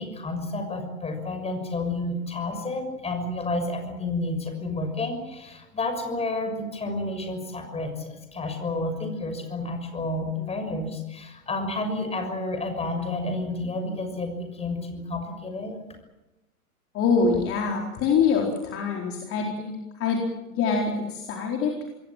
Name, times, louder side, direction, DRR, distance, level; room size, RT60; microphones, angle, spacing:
voice 1, 0.0-15.8, left 2 dB, 15° left, 6 dB, 6.5 m, -30 dB
voice 2, 16.9-19.7 20.0-20.2 20.5-21.7, left 5 dB, 30° left, 0 dB, 4.5 m, -24 dB
27.0 x 21.5 x 7.6 m, 0.99 s
figure-of-eight pair, 105°, 45 cm